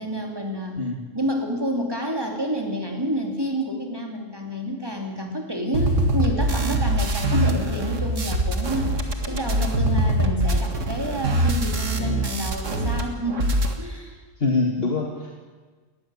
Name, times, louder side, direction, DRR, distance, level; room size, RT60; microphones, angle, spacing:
voice 1, 0.0-0.9 1.1-14.2, equal, 20° right, 2 dB, 3.2 m, -29 dB
sound 1, 5.7-13.0 13.3-13.7, right 1 dB, 85° right, 2.2 m, -23 dB
voice 2, 14.4-15.3, left 3 dB, 50° left, 0 dB, 2.2 m, -24 dB
19.5 x 14.0 x 10.0 m, 1.4 s
omnidirectional pair, 1.3 m